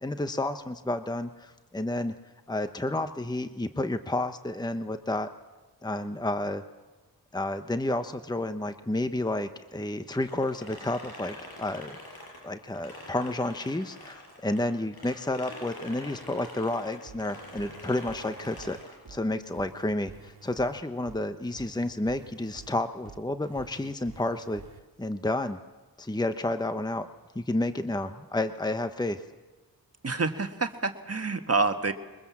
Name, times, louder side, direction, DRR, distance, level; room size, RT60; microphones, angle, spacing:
voice 1, 0.0-2.1 2.5-5.3 5.8-6.6 7.3-12.0 12.4-24.6 25.0-25.6 26.0-27.1 27.3-29.2, left 1 dB, 10° left, 9 dB, 1.0 m, -31 dB
sound 1, 10.1-14.6 14.9-19.0, left 1 dB, 80° left, 6.3 m, -45 dB
sound 2, 15.0-20.0, left 3 dB, 50° left, 2.2 m, -52 dB
sound 3, 17.1-24.8, right 5 dB, 85° right, 1.7 m, -50 dB
voice 2, 30.0-31.9, right 3 dB, 40° right, 6 dB, 1.6 m, -27 dB
22.5 x 21.0 x 7.3 m, 1.2 s
cardioid pair, 50°, 37 cm